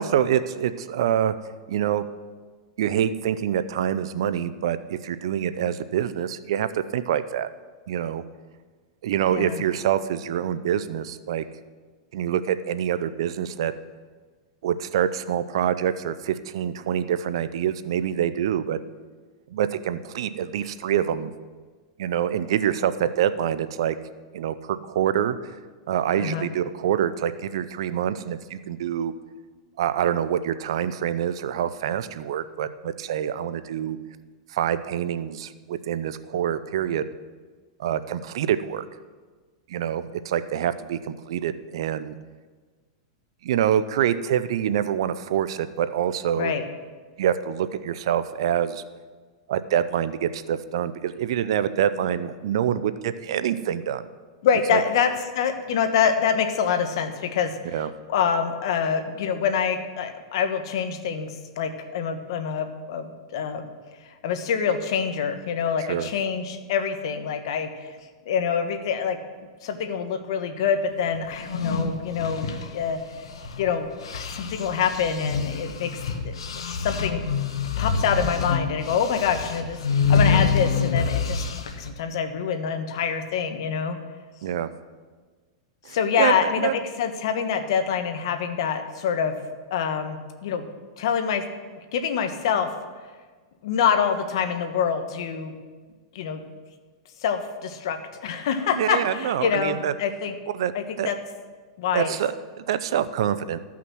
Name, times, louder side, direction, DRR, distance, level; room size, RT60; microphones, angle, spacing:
voice 1, 0.0-1.3 1.7-2.1 2.8-7.5 7.9-8.2 9.0-11.4 12.1-13.7 14.6-18.8 19.5-21.3 22.0-23.9 24.3-25.4 25.9-29.1 29.8-34.0 34.5-37.0 37.8-38.8 39.7-42.2 43.4-46.5 47.2-48.8 49.5-54.0 54.7-54.8 57.7-57.9 65.9-66.1 80.3-80.5 84.4-84.7 85.8-86.7 98.8-99.9 100.5-100.7 101.0-101.1 101.9-103.6, right 9 dB, 75° right, 13 dB, 0.6 m, -26 dB
voice 2, 9.3-9.6 26.2-26.5 46.3-46.6 54.4-57.8 58.1-63.6 64.2-67.9 68.3-69.2 69.6-73.0 73.6-76.0 76.2-76.3 76.8-77.2 77.8-79.8 80.1-81.4 81.8-84.0 85.9-89.4 89.7-90.6 91.0-91.5 91.9-92.7 93.6-95.5 96.1-96.4 97.2-100.3 100.7-101.2 101.8-102.1, left 7 dB, 70° left, 8 dB, 1.2 m, -26 dB
sound 1, 71.3-73.7 74.0-81.9, left 5 dB, 90° left, 1.1 m, -26 dB
14.5 x 5.9 x 6.2 m, 1.4 s
hypercardioid pair, 125°, 3 cm